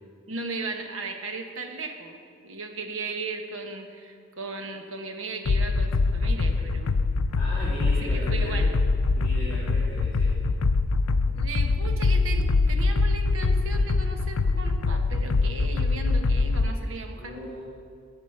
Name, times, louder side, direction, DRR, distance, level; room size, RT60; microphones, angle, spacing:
voice 1, 0.3-2.2 2.4-7.0 8.0-8.7 11.3-17.5, right 3 dB, 75° right, 5 dB, 1.1 m, -36 dB
sound 1, 5.5-16.7, left 3 dB, 85° left, 0.4 m, -24 dB
voice 2, 7.3-8.7 9.2-10.3 17.1-17.6, equal, 10° left, -13 dB, 3.1 m, -37 dB
15.0 x 5.2 x 6.7 m, 2.2 s
head